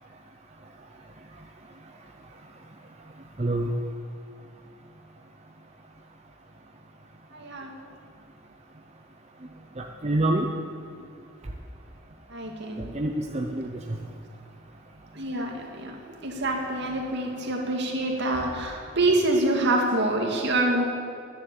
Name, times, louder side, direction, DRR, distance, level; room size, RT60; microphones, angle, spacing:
voice 1, 3.4-3.7 9.8-10.5 12.8-14.0, right 1 dB, 35° right, 1 dB, 0.8 m, -27 dB
voice 2, 7.3-7.7 12.3-12.9 15.2-15.9 16.2-20.8, right 2 dB, 60° right, 1 dB, 2.3 m, -26 dB
11.0 x 9.9 x 8.4 m, 2.4 s
head